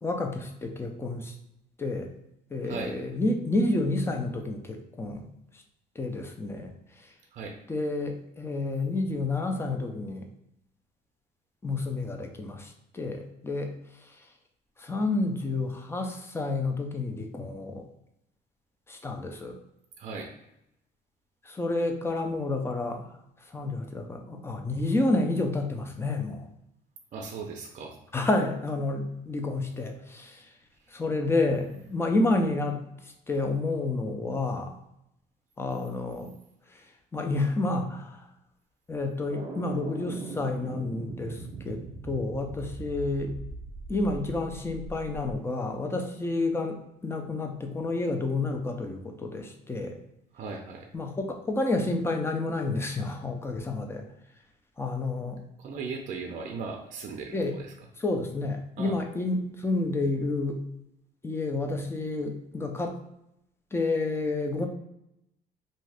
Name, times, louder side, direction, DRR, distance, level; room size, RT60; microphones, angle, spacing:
voice 1, 0.0-1.3 1.8-2.1 2.5-5.3 6.0-6.7 7.7-10.3 11.6-13.7 14.0-14.2 14.8-17.8 18.9-19.6 21.4-23.1 23.5-26.5 28.1-30.5 30.9-34.7 35.6-36.3 36.7-36.8 37.1-38.2 38.9-43.3 43.9-50.0 50.9-54.0 54.8-55.4 57.3-57.5 58.0-60.6 61.2-63.0 63.7-64.7, left 2 dB, 15° left, 4 dB, 0.4 m, -30 dB
voice 2, 2.6-3.0 7.3-7.6 20.0-20.3 27.1-28.0 50.3-50.9 55.6-57.7 58.8-58.9, right 4 dB, 50° right, 2 dB, 0.5 m, -37 dB
sound 1, 39.3-45.4, right 3 dB, 30° right, 0.8 m, -40 dB
2.6 x 2.4 x 3.3 m, 0.82 s
cardioid pair, 110°, 17 cm